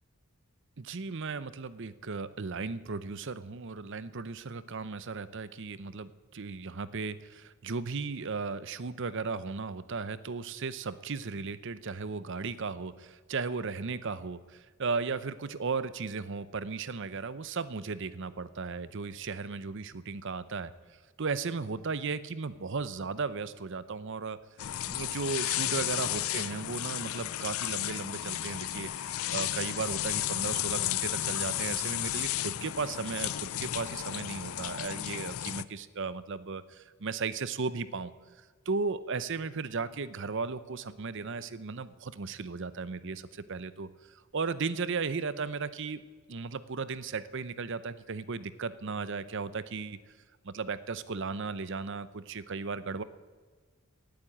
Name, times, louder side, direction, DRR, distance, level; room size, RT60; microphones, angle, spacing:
voice 1, 0.8-20.7 21.2-24.4 24.8-38.1 38.4-46.0 46.3-50.0 50.4-53.0, right 4 dB, 55° right, 15 dB, 0.7 m, -36 dB
sound 1, 24.6-35.6, left 13 dB, 70° left, 0.4 m, -33 dB
18.0 x 8.8 x 8.7 m, 1.5 s
head